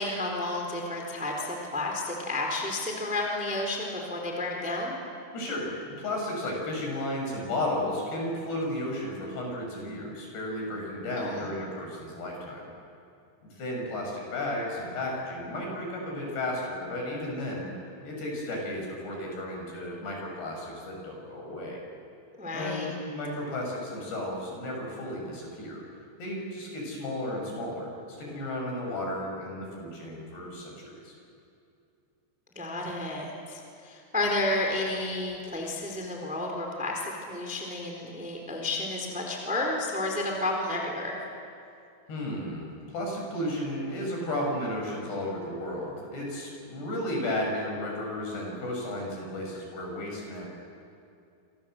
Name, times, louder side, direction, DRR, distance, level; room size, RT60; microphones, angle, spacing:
voice 1, 0.0-5.0 11.2-11.4 22.4-22.9 32.5-41.1, left 2 dB, ahead, 1 dB, 2.9 m, -31 dB
voice 2, 5.3-12.7 13.5-17.7 18.0-21.8 22.5-25.8 26.2-31.1 42.1-50.5, left 1 dB, 55° left, 0 dB, 8.3 m, -33 dB
28.0 x 26.0 x 7.9 m, 2.5 s
omnidirectional pair, 5.8 m